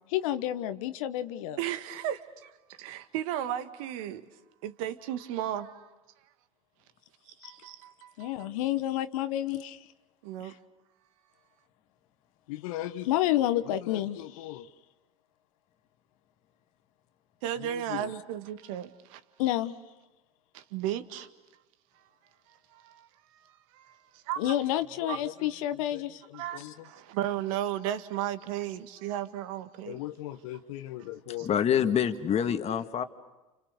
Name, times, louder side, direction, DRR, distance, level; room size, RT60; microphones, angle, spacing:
voice 1, 0.1-1.6 7.4-7.5 8.2-9.8 10.4-10.5 12.5-14.7 17.6-18.1 19.4-19.7 24.4-26.7 29.9-31.5, left 13 dB, 65° left, 1.3 m, -31 dB
voice 2, 1.6-2.5 2.8-4.2 4.6-5.9 7.3-8.3 10.2-10.5 17.4-19.2 20.5-21.3 22.5-24.6 25.1-25.2 26.3-30.0 31.4-31.5, right 11 dB, 65° right, 1.9 m, -35 dB
voice 3, 31.4-33.0, left 8 dB, 35° left, 2.0 m, -26 dB
30.0 x 29.0 x 6.8 m
hypercardioid pair, 85°, 19 cm